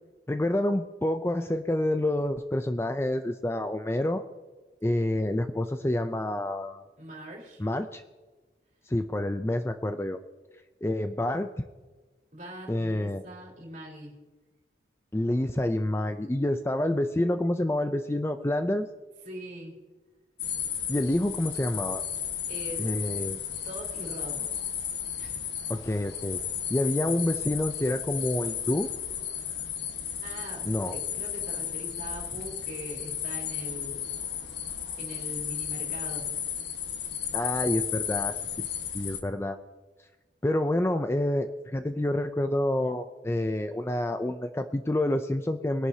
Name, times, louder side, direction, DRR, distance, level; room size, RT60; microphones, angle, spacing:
voice 1, 0.3-4.2 4.8-6.8 7.6-8.0 8.9-10.2 10.8-11.5 12.7-13.2 15.1-18.9 20.9-22.0 22.8-23.4 25.7-26.4 26.7-28.9 30.6-30.9 37.3-38.4 38.9-39.6 40.4-45.9, left 1 dB, 15° left, 8 dB, 0.4 m, -28 dB
voice 2, 7.0-7.6 12.3-14.1 19.2-19.8 22.5-22.9 23.6-24.5 25.2-25.4 30.2-34.1 35.0-36.3, right 1 dB, 45° right, -2 dB, 3.8 m, -42 dB
sound 1, 20.4-39.2, left 8 dB, 70° left, 1.4 m, -34 dB
21.0 x 11.0 x 2.8 m, 1.3 s
head